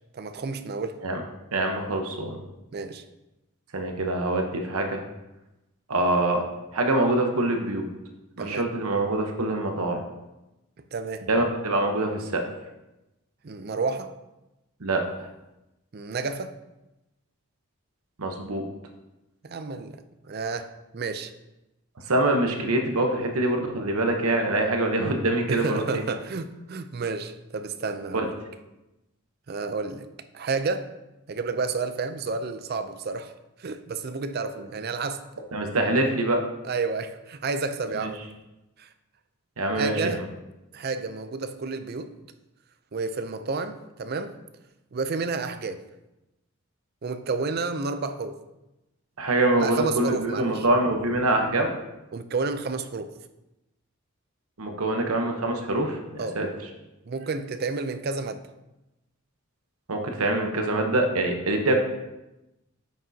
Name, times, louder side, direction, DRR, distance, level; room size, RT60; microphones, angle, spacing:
voice 1, 0.1-1.0 2.7-3.0 8.4-8.6 10.9-11.2 13.4-14.1 15.9-16.5 19.4-21.3 25.5-28.3 29.5-30.1 30.3-30.9 31.3-33.3 33.6-35.2 36.6-38.2 38.8-38.9 39.7-40.2 40.7-42.1 42.9-44.3 44.9-45.8 47.0-48.3 49.6-50.7 52.1-53.1 56.2-56.4 57.1-58.4, right 4 dB, 45° right, 11 dB, 0.4 m, -30 dB
voice 2, 1.5-2.4 3.7-5.0 5.9-6.4 6.7-7.9 8.4-10.0 11.3-12.4 14.8-15.0 18.2-18.6 22.1-26.0 28.1-28.3 34.5-34.7 35.5-36.4 37.9-38.1 39.6-40.2 49.2-51.7 54.6-56.5 59.9-61.7, right 2 dB, 85° right, 3 dB, 1.0 m, -25 dB
8.7 x 6.2 x 2.8 m, 0.98 s
head